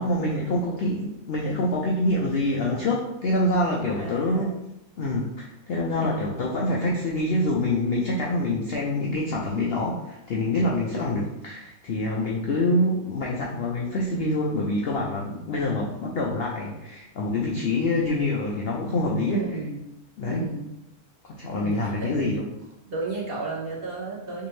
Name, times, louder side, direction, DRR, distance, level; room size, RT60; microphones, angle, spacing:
voice 1, 0.0-4.5 5.0-19.4 20.2-20.5 21.2-22.5, left 1 dB, 70° left, -2 dB, 0.5 m, -26 dB
voice 2, 3.9-4.5 6.0-6.3 10.9-11.3 19.3-19.8 20.2-20.7 21.5-22.2 22.9-24.5, right 3 dB, 50° right, -5 dB, 0.8 m, -33 dB
3.5 x 3.0 x 3.1 m, 0.89 s
omnidirectional pair, 1.6 m